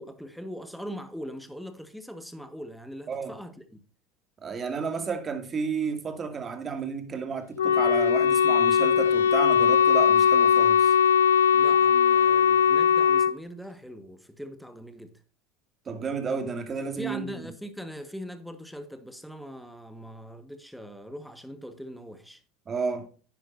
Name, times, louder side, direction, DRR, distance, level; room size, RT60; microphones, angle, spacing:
voice 1, 0.0-3.8 11.5-15.2 17.0-22.4, equal, ahead, 1.5 m, -41 dB
voice 2, 4.4-10.9 15.9-17.3 22.7-23.1, right 5 dB, 30° right, 2.3 m, -32 dB
Wind instrument woodwind instrument, 7.6-13.3, left 7 dB, 80° left, 0.3 m, -20 dB
10.5 x 10.0 x 2.7 m
figure-of-eight pair, 75°, 0 cm